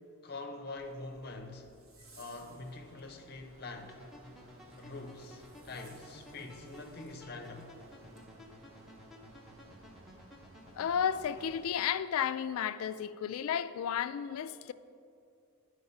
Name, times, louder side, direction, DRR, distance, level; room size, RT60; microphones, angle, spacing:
voice 1, 0.2-1.7 2.2-4.0 4.8-7.7, left 3 dB, 45° left, 0.7 m, -45 dB
Zipper (clothing), 0.7-8.3, right 2 dB, 75° right, 1.2 m, -63 dB
sound 1, 2.3-11.7, right 1 dB, 60° right, 0.9 m, -60 dB
sound 2, 3.9-11.5, equal, ahead, 0.8 m, -54 dB
voice 2, 10.8-14.7, left 8 dB, 75° left, 0.3 m, -33 dB
9.9 x 4.7 x 5.6 m
head